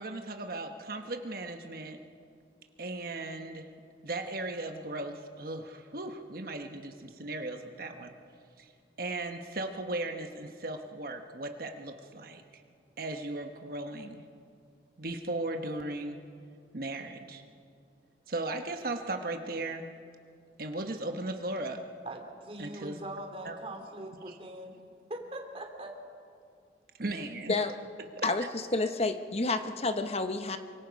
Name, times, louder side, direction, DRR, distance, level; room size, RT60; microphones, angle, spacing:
voice 1, 0.0-2.0 2.8-3.7 4.0-8.1 8.6-8.7 9.0-12.6 13.0-14.2 15.0-16.2 16.7-17.4 18.3-19.9 20.6-21.8 22.6-23.0 23.4-23.6 24.3-24.4 27.0-27.6 28.2-28.3, right 2 dB, 55° right, 5 dB, 1.2 m, -37 dB
voice 2, 22.0-24.8 25.1-25.9, right 1 dB, 35° right, 3 dB, 2.9 m, -41 dB
voice 3, 28.2-30.6, left 3 dB, 35° left, 8 dB, 0.9 m, -30 dB
27.5 x 24.5 x 5.3 m, 2.4 s
head